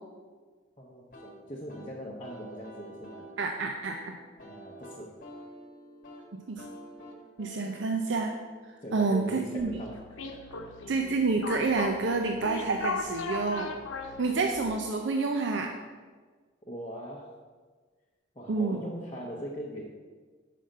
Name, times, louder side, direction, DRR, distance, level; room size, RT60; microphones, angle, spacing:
voice 1, 0.8-3.3 4.4-5.1 7.7-7.8 8.8-10.2 10.5-10.6 16.7-17.3 18.3-19.9, equal, 25° left, -4 dB, 0.8 m, -40 dB
sound 1, 1.1-9.7, equal, 45° left, 1.3 m, -49 dB
voice 2, 3.4-4.1 6.5-6.6 7.4-8.3 8.9-9.7 10.9-13.7 14.2-15.7 18.5-18.8, right 3 dB, 65° right, 3 dB, 0.5 m, -28 dB
sound 2, 9.6-14.7, left 4 dB, 85° left, 0.8 m, -38 dB
5.8 x 5.0 x 6.4 m, 1.5 s
head